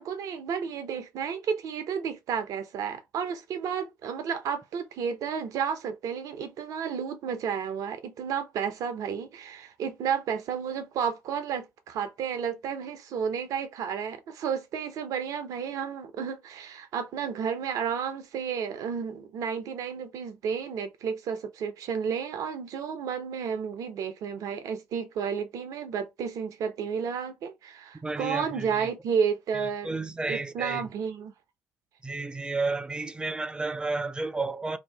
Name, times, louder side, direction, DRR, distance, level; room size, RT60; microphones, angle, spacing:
voice 1, 0.0-30.0 30.3-31.3, right 7 dB, 60° right, 0.7 m, -32 dB
voice 2, 28.0-28.9 29.5-30.9 32.0-34.8, right 3 dB, 15° right, 0.5 m, -32 dB
2.8 x 2.4 x 3.4 m
figure-of-eight pair, 50°, 7 cm